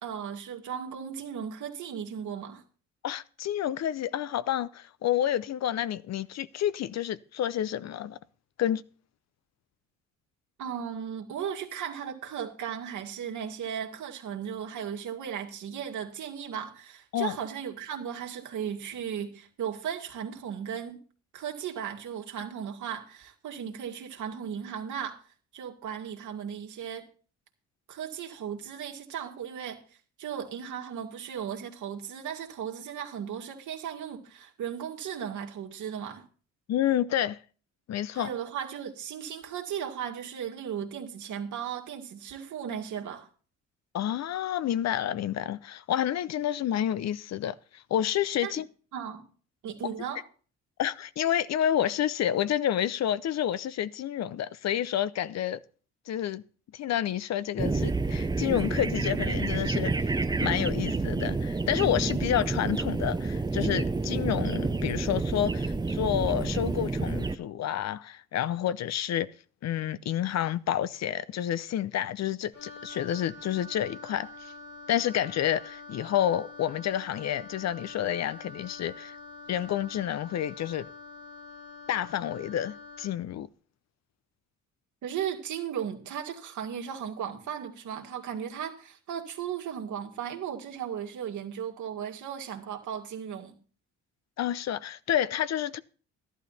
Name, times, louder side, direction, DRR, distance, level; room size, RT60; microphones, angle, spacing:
voice 1, 0.0-2.6 10.6-21.0 21.3-25.2 25.5-27.1 27.9-29.8 30.2-36.2 38.1-43.3 48.4-48.5 48.9-49.3 49.6-50.2 85.0-93.5, right 8 dB, 75° right, 2.2 m, -36 dB
voice 2, 3.0-8.2 8.6-8.8 17.1-17.4 36.7-37.4 37.9-38.3 43.9-48.6 50.8-55.6 56.1-56.4 56.7-59.9 60.4-69.3 69.6-74.5 74.9-79.2 79.5-80.9 81.9-83.5 94.4-95.8, left 11 dB, 60° left, 0.7 m, -29 dB
sound 1, 57.6-67.4, right 3 dB, 15° right, 0.7 m, -29 dB
Wind instrument woodwind instrument, 72.5-83.2, left 2 dB, 85° left, 4.5 m, -46 dB
12.5 x 11.5 x 4.2 m
cardioid pair, 90°, 30 cm